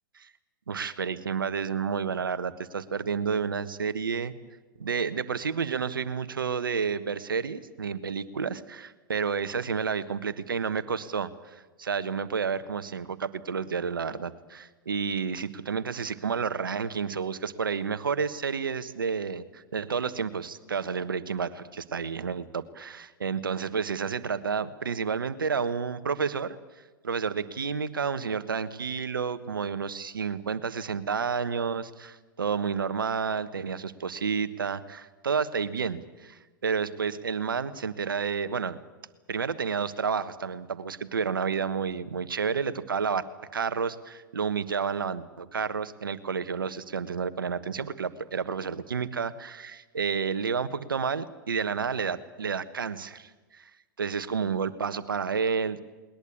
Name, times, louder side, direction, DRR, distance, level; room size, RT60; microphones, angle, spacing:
voice 1, 0.7-4.3 4.8-26.6 27.0-38.8 39.3-43.2 43.5-53.7 54.0-55.8, right 6 dB, 85° right, 13 dB, 1.3 m, -30 dB
20.5 x 20.0 x 8.5 m, 1.3 s
hypercardioid pair, 105°, 11 cm